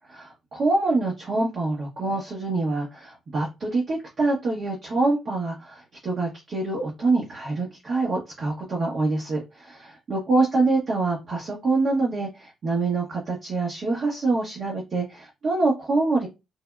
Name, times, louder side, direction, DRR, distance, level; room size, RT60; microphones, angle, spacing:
voice 1, 0.1-16.3, right 3 dB, 50° right, -2 dB, 1.0 m, -25 dB
3.3 x 2.1 x 2.3 m, 0.25 s
hypercardioid pair, 55°, 0 cm